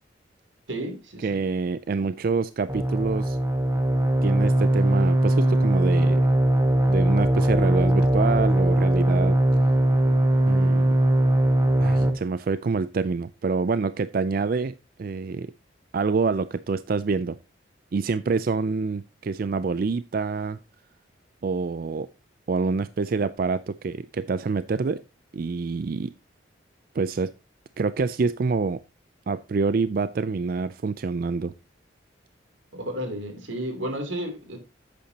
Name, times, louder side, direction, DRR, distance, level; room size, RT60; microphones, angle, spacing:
voice 1, 0.7-1.4 32.7-34.6, right 1 dB, 85° right, 3.0 m, -32 dB
voice 2, 1.2-3.4 4.2-6.2 6.9-9.4 10.5-11.0 11.8-15.5 15.9-17.4 17.9-20.6 21.4-22.1 22.5-25.0 25.3-26.1 26.9-27.3 27.8-28.8 29.3-31.5, right 4 dB, 50° right, 0.4 m, -26 dB
sound 1, 2.7-12.1, right 1 dB, 15° right, 1.3 m, -20 dB
11.5 x 8.4 x 2.8 m
head